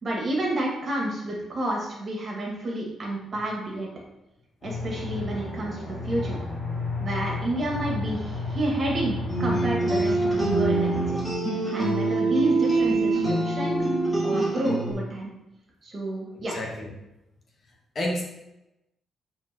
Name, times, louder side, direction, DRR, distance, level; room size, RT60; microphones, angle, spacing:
voice 1, 0.0-3.9 4.6-6.4 7.0-11.2 11.7-13.8 14.2-15.3 15.8-16.6, right 1 dB, 40° right, -2 dB, 2.0 m, -30 dB
Aircraft, 4.6-11.1, left 2 dB, 60° left, 1.9 m, -32 dB
sound 1, 9.3-14.9, right 2 dB, 5° left, 2.3 m, -24 dB
voice 2, 16.5-16.9 17.9-18.2, left 1 dB, 40° left, 0 dB, 1.3 m, -29 dB
8.3 x 4.3 x 3.0 m, 0.91 s
cardioid pair, 105°, 0 cm